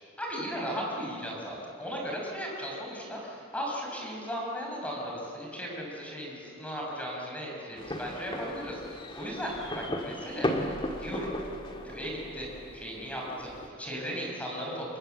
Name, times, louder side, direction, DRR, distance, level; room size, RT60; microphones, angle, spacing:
voice 1, 0.2-10.5 11.0-11.3 11.8-12.5 12.7-15.0, equal, 5° left, -2 dB, 5.7 m, -36 dB
sound 1, 7.8-13.7, left 1 dB, 25° left, 1.9 m, -36 dB
27.0 x 22.0 x 7.8 m, 2.7 s
head